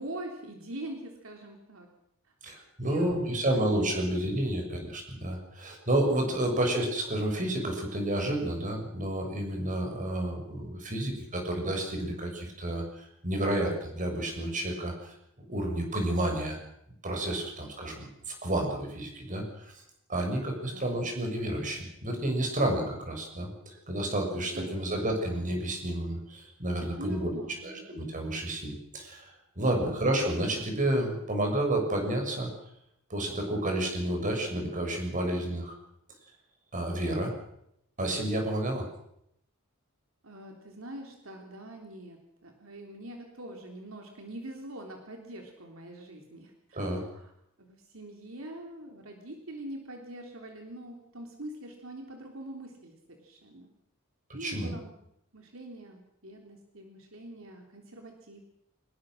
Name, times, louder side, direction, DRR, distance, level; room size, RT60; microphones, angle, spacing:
voice 1, 0.0-1.9 2.8-3.7 20.6-20.9 24.4-24.8 26.8-27.8 29.8-30.0 40.2-47.3 47.6-53.7 54.3-54.9 55.3-58.4, right 1 dB, 75° right, 3 dB, 3.4 m, -44 dB
voice 2, 2.4-15.1 15.5-16.6 17.0-19.7 20.1-27.3 27.6-32.5 33.1-35.8 36.7-37.3 38.0-38.9 46.7-47.0 54.4-54.7, right 1 dB, 40° right, 2 dB, 6.4 m, -30 dB
24.5 x 20.5 x 6.4 m, 0.77 s
head